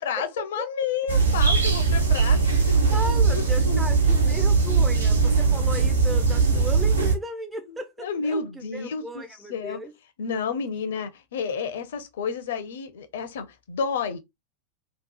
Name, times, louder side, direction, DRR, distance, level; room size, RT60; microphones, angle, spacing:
voice 1, 0.0-2.4 2.7-3.8 4.2-4.5 7.7-9.8 10.2-14.2, left 6 dB, 60° left, 0.5 m, -31 dB
sound 1, 1.1-7.1, right 4 dB, 80° right, 0.8 m, -20 dB
voice 2, 2.9-9.9, right 1 dB, 10° right, 0.3 m, -35 dB
2.8 x 2.3 x 2.2 m
figure-of-eight pair, 90°, 0 cm